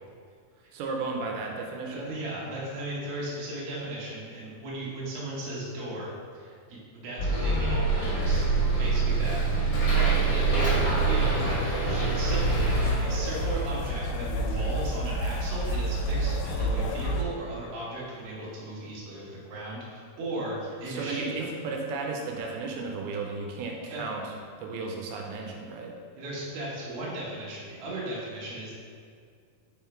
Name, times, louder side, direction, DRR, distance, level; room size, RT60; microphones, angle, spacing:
voice 1, 0.7-2.1 20.9-24.3 24.6-25.9, right 3 dB, 85° right, 1 dB, 2.5 m, -34 dB
voice 2, 1.9-8.4 8.8-11.4 11.8-21.5 23.9-24.0 26.2-28.7, right 1 dB, 60° right, -6 dB, 1.8 m, -36 dB
Bus, 7.2-12.9, right 3 dB, 55° left, 1.3 m, -24 dB
sound 1, 12.3-17.2, right 1 dB, 85° left, 2.6 m, -29 dB
5.7 x 3.7 x 4.4 m, 2.2 s
omnidirectional pair, 4.4 m